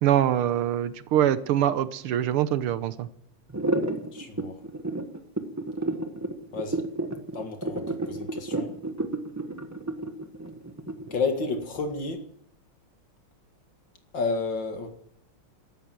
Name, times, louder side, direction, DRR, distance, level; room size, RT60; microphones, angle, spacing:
voice 1, 0.0-3.1, right 11 dB, 80° right, 1.8 m, -24 dB
sound 1, 3.5-11.3, right 2 dB, 10° right, 1.0 m, -30 dB
voice 2, 4.1-4.6 6.5-6.8 7.3-8.7 11.1-12.2 14.1-14.9, left 4 dB, 55° left, 2.6 m, -31 dB
14.0 x 12.5 x 7.6 m
omnidirectional pair, 2.4 m